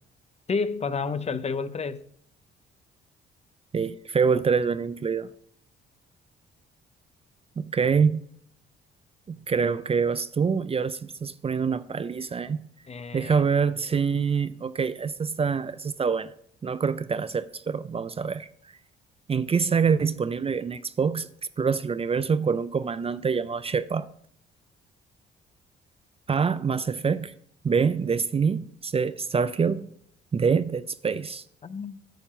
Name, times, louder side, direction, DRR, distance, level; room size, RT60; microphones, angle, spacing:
voice 1, 0.5-2.0 12.9-13.4 13.9-14.0 31.6-32.0, left 4 dB, 35° left, 0.7 m, -30 dB
voice 2, 3.7-5.3 7.6-8.2 9.3-12.7 13.1-16.3 16.6-18.5 19.3-21.3 21.6-24.1 26.3-27.3 27.6-29.9 30.3-31.4, right 6 dB, 30° right, 0.5 m, -25 dB
9.2 x 7.2 x 5.5 m
cardioid pair, 90°, 20 cm